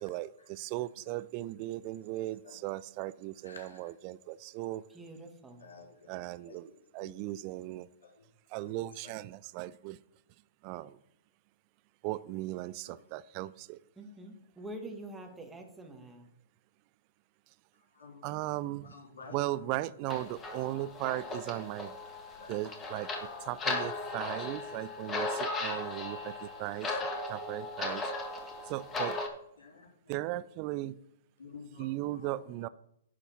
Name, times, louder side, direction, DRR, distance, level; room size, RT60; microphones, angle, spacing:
voice 1, 0.0-4.8 6.1-7.9 8.5-10.0 10.6-11.0 12.0-13.8 18.2-18.9 19.3-21.9 22.5-23.1 23.4-28.0 28.7-29.2 30.1-31.0 31.8-32.7, right 16 dB, 40° right, 17 dB, 0.3 m, -37 dB
voice 2, 3.4-3.8 5.6-5.9 6.4-6.6 7.0-7.1 9.0-9.1 12.8-12.9 18.0-18.2 18.9-19.4 22.4-22.5 26.1-26.2 29.6-29.9 31.4-31.9 32.2-32.3, left 5 dB, 75° left, -1 dB, 3.7 m, -50 dB
voice 3, 4.9-5.6 14.0-16.3, right 1 dB, 10° right, 3 dB, 1.6 m, -46 dB
sound 1, 20.1-29.3, left 3 dB, 20° left, 1.7 m, -37 dB
11.0 x 4.1 x 6.1 m, 0.76 s
hypercardioid pair, 115°, 0 cm